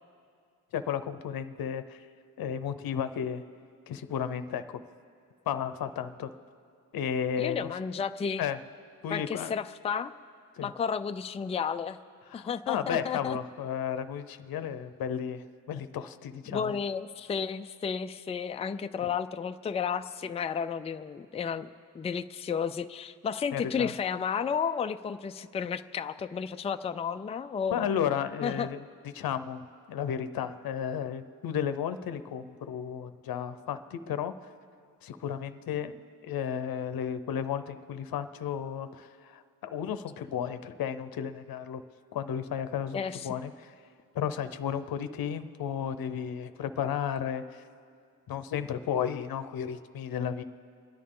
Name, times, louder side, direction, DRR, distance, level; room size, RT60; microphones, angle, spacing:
voice 1, 0.7-2.0 2.4-3.4 3.9-4.8 5.5-6.3 6.9-7.7 8.4-8.6 9.0-9.5 10.6-10.7 12.3-16.7 23.5-23.9 27.7-28.8 29.1-29.6 29.9-34.3 35.0-35.9 36.2-41.8 42.1-43.7 44.1-47.6 48.3-50.4, left 8 dB, 75° left, 10 dB, 0.7 m, -33 dB
voice 2, 7.4-8.5 9.1-10.1 10.6-12.0 12.3-13.4 16.5-21.7 21.9-27.9 28.4-28.7 42.9-43.3, left 6 dB, 20° left, 9 dB, 0.3 m, -32 dB
28.5 x 11.0 x 3.7 m, 2.3 s
wide cardioid pair, 135°, 36 cm